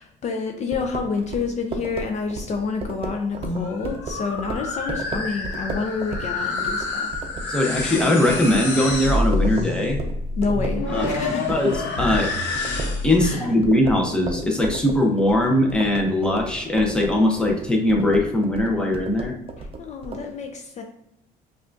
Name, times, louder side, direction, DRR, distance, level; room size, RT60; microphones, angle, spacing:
voice 1, 0.0-7.2 10.4-11.6 13.2-13.5 19.6-20.8, left 4 dB, 45° left, 3 dB, 0.5 m, -29 dB
sound 1, 0.7-11.2 11.5-20.2, right 2 dB, 35° right, 0.6 m, -33 dB
sound 2, 3.2-13.2, left 2 dB, 90° left, 0.8 m, -27 dB
voice 2, 7.5-10.0 10.9-11.2 11.5-12.3 13.0-19.3, left 1 dB, 5° left, 1 dB, 0.7 m, -20 dB
5.3 x 2.4 x 2.5 m, 0.83 s
cardioid pair, 110°, 17 cm